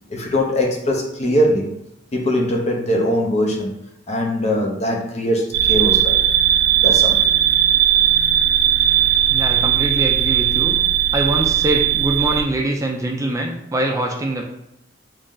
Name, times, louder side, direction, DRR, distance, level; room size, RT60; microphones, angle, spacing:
voice 1, 0.1-1.8 2.1-3.7 4.1-6.2 6.8-7.3, equal, 35° left, 0.6 m, -21 dB
sound 1, 5.5-12.4, right 9 dB, 60° right, 0.6 m, -17 dB
voice 2, 9.3-10.8 11.1-14.4, right 1 dB, 15° right, 0.4 m, -23 dB
3.1 x 2.6 x 3.7 m
head